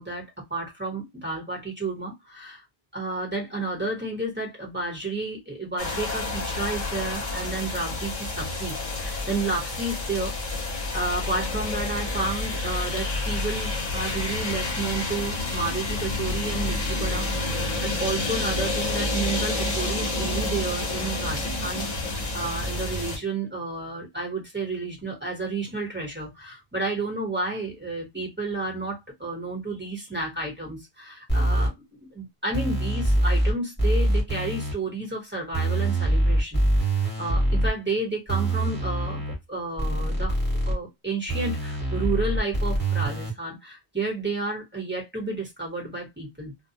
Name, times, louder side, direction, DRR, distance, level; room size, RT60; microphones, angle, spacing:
voice 1, 0.0-2.6 2.9-10.4 10.9-40.4 40.6-46.5, right 3 dB, 10° right, 1.1 m, -31 dB
sound 1, 5.8-23.2, left 2 dB, 45° left, 0.9 m, -29 dB
sound 2, 31.3-31.7 32.5-33.5 33.8-34.7 35.5-37.7 38.3-39.4 39.8-40.7 41.3-43.3, right 1 dB, 10° left, 1.1 m, -24 dB
2.2 x 2.1 x 2.8 m
omnidirectional pair, 1.1 m